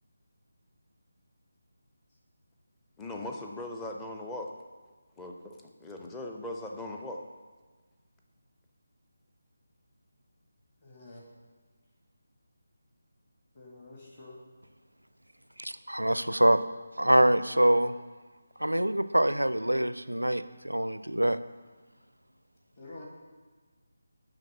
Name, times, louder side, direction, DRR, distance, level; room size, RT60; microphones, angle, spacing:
voice 1, 3.0-4.5 5.2-5.5 5.8-7.2, left 1 dB, 10° left, 2 dB, 0.6 m, -39 dB
voice 2, 10.8-11.3 13.6-14.4 22.8-23.1, left 2 dB, 35° left, -3 dB, 1.8 m, -48 dB
voice 3, 15.6-16.6 17.0-17.9 18.6-21.4, right 1 dB, 80° right, 13 dB, 0.4 m, -25 dB
9.9 x 3.6 x 6.5 m, 1.4 s
figure-of-eight pair, 155°, 0 cm